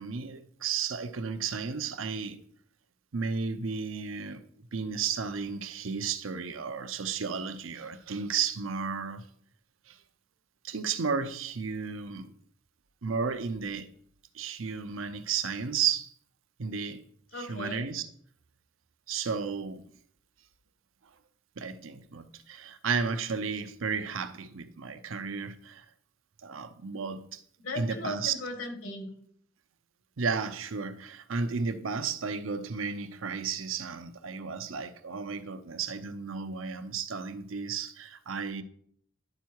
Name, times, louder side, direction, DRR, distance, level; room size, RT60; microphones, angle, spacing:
voice 1, 0.0-2.4 3.1-9.2 9.9-10.0 10.6-12.3 13.0-13.9 14.3-16.1 16.6-17.0 17.3-18.1 19.1-19.8 21.6-25.9 26.4-27.4 27.8-28.3 30.2-38.6, right 5 dB, 85° right, 0.7 m, -33 dB
voice 2, 17.3-17.8 27.6-29.1, left 2 dB, 75° left, 1.8 m, -37 dB
11.0 x 4.6 x 4.6 m
head